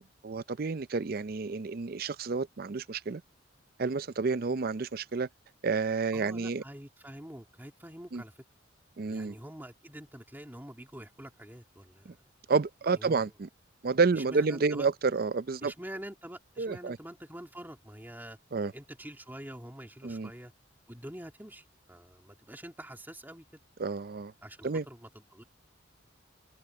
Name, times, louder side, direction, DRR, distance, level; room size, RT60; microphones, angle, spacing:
voice 1, 0.0-3.2 3.8-5.3 5.6-6.6 8.1-8.2 9.0-9.4 12.1-12.2 12.5-13.5 13.8-15.7 16.6-17.0 18.5-18.7 20.0-20.3 23.8-24.3 24.6-24.8, right 4 dB, 50° right, 0.5 m, -30 dB
voice 2, 6.1-8.3 9.1-12.2 12.9-13.3 14.1-14.9 15.6-18.4 18.7-20.5 20.9-23.4 24.4-25.4, right 1 dB, 10° right, 2.7 m, -46 dB
head